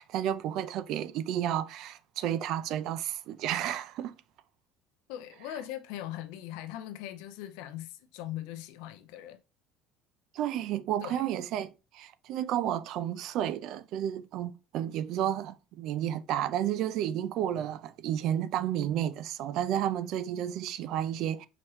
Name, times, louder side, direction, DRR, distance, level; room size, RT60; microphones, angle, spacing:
voice 1, 0.0-4.2 10.3-21.5, right 11 dB, 60° right, 0.3 m, -31 dB
voice 2, 5.1-9.4 11.0-11.3, left 12 dB, 85° left, 0.5 m, -40 dB
4.9 x 3.0 x 3.0 m
cardioid pair, 145°, 0 cm